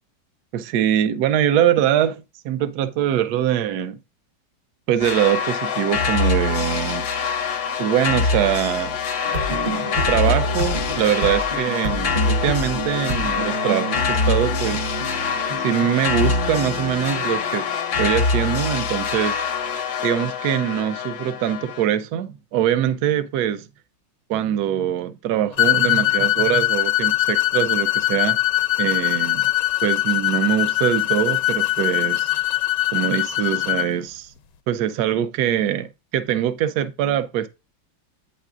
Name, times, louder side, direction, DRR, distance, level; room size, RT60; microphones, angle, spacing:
voice 1, 0.5-4.0 4.9-7.0 7.8-9.0 10.1-14.9 15.6-19.4 20.0-23.6 24.3-28.4 28.8-29.4 29.8-32.3 32.9-34.3 34.7-37.5, right 10 dB, 70° right, 1.1 m, -23 dB
sound 1, 5.0-21.9, left 5 dB, 60° left, 0.8 m, -24 dB
sound 2, 9.2-18.7, right 1 dB, 45° right, 1.0 m, -31 dB
sound 3, 25.6-33.9, left 17 dB, 75° left, 1.2 m, -21 dB
9.0 x 4.9 x 2.4 m
omnidirectional pair, 2.0 m